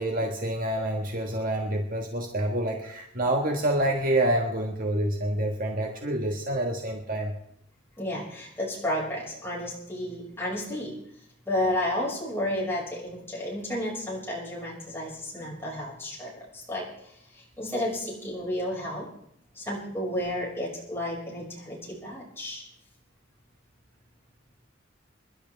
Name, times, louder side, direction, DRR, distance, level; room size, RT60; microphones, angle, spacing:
voice 1, 0.0-7.3, right 1 dB, 45° right, 1 dB, 1.6 m, -27 dB
voice 2, 8.0-10.9 11.5-16.9 17.3-19.1 19.6-22.6, left 1 dB, 10° left, -4 dB, 5.8 m, -32 dB
26.5 x 11.5 x 3.5 m, 0.72 s
head